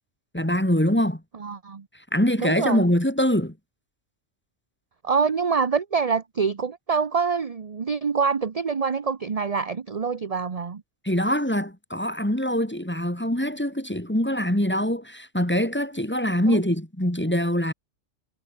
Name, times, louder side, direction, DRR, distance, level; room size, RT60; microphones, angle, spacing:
voice 1, 0.3-1.2 2.1-3.5 11.0-17.7, equal, 10° left, 2.2 m, -23 dB
voice 2, 1.4-1.8 2.4-2.8 5.0-10.8 16.5-16.6, right 5 dB, 35° right, 0.9 m, -25 dB
omnidirectional pair, 1.3 m